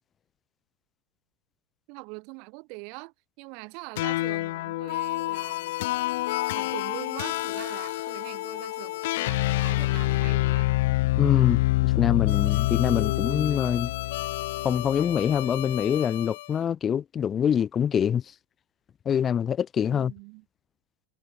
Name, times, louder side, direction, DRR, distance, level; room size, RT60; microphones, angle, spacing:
voice 1, 1.9-5.8 6.5-10.7 19.8-20.4, right 33 dB, 60° right, 2.3 m, -43 dB
sound 1, 4.0-16.5, left 18 dB, 75° left, 1.2 m, -27 dB
voice 2, 11.2-13.9 14.6-18.2 19.0-20.1, left 8 dB, 30° left, 1.1 m, -25 dB
supercardioid pair, 115°, 0 cm